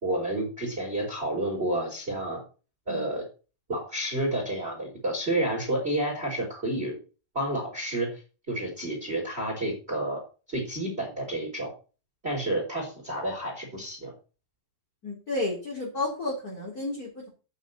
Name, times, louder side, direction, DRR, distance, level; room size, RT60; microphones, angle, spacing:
voice 1, 0.0-2.4 2.9-3.2 3.7-7.0 7.3-8.2 8.5-10.2 10.5-11.7 12.2-14.1, right 1 dB, 15° right, 0 dB, 4.2 m, -30 dB
voice 2, 15.0-17.3, left 2 dB, 25° left, -3 dB, 3.7 m, -32 dB
10.5 x 9.3 x 4.2 m, 0.33 s
omnidirectional pair, 4.5 m